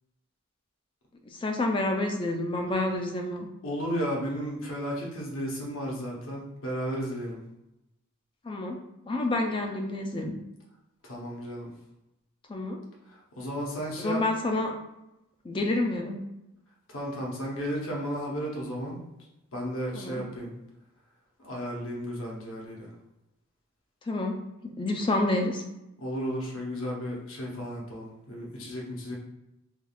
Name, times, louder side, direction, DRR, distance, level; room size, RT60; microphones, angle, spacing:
voice 1, 1.3-3.5 8.4-8.8 9.0-10.3 12.5-12.8 14.0-14.7 15.4-16.2 19.9-20.2 24.1-24.4 24.6-25.6, left 2 dB, 25° left, 3 dB, 0.3 m, -28 dB
voice 2, 3.6-7.4 11.0-11.7 13.4-14.2 16.9-19.0 19.5-20.5 21.4-22.9 26.0-29.2, equal, 65° left, -2 dB, 0.8 m, -33 dB
3.4 x 2.3 x 2.3 m, 0.91 s
head